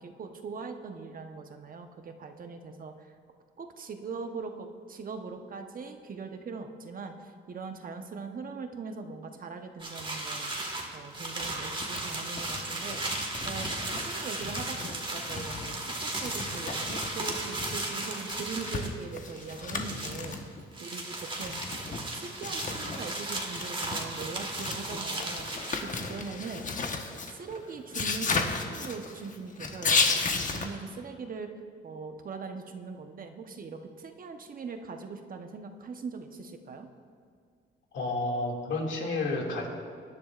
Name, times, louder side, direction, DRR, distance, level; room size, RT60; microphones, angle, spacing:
voice 1, 0.0-3.1 3.6-10.5 10.9-20.3 20.8-21.6 22.0-26.7 27.1-30.3 30.5-31.5 31.8-36.9, right 4 dB, 45° right, 5 dB, 1.0 m, -41 dB
sound 1, 9.8-18.9 19.3-20.4 20.7-25.8, right 2 dB, 25° right, 1.8 m, -35 dB
sound 2, 11.1-11.5 11.8-12.1 12.4-12.6 12.9-14.1 14.4-16.0 16.2-20.6 21.4-23.0 23.4-30.7, left 4 dB, 40° left, 1.2 m, -34 dB
voice 2, 37.9-39.7, left 2 dB, 70° left, -1 dB, 2.4 m, -30 dB
20.5 x 10.5 x 2.5 m, 2.1 s
cardioid pair, 90°, 20 cm